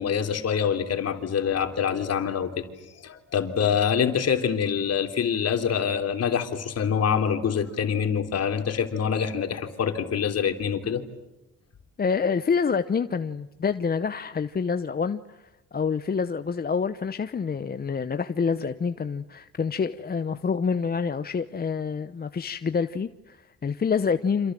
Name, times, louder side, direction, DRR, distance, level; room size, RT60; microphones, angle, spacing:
voice 1, 0.0-2.6 3.0-11.0, left 7 dB, 55° left, 6 dB, 3.3 m, -25 dB
voice 2, 12.0-15.4 15.7-24.5, left 5 dB, 30° left, 10 dB, 0.9 m, -27 dB
28.5 x 27.0 x 7.6 m, 1.0 s
cardioid pair, 90°, 30 cm